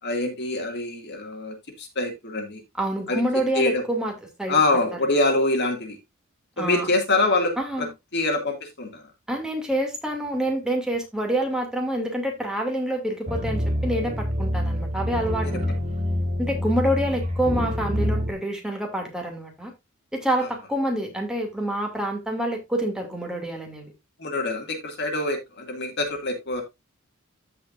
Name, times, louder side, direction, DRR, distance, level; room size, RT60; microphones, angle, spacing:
voice 1, 0.0-2.6 3.1-3.2 3.5-3.8 4.5-6.0 6.6-7.9 8.1-9.0 20.4-20.5 24.2-26.6, left 2 dB, 55° left, 2.3 m, -25 dB
voice 2, 2.8-4.1 4.4-4.8 6.6-6.9 7.6-7.9 9.3-15.7 16.4-19.7 20.1-23.9, right 1 dB, 5° right, 2.6 m, -27 dB
sound 1, 13.3-18.3, equal, 35° right, 1.6 m, -26 dB
14.5 x 5.3 x 2.6 m
head